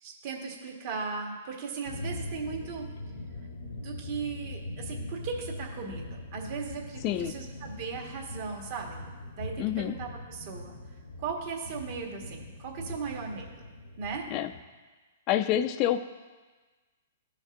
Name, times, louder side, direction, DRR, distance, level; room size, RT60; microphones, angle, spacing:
voice 1, 0.0-2.9 3.6-9.0 9.4-10.8 11.2-13.6 14.0-14.3, right 5 dB, 50° right, 0 dB, 1.5 m, -37 dB
sound 1, 1.8-14.6, left 2 dB, 80° left, 1.0 m, -41 dB
voice 2, 7.0-7.3 9.6-9.9 14.3-14.5 15.3-16.0, left 12 dB, 35° left, 11 dB, 0.4 m, -27 dB
14.5 x 5.2 x 2.6 m, 1.3 s
hypercardioid pair, 130°, 0 cm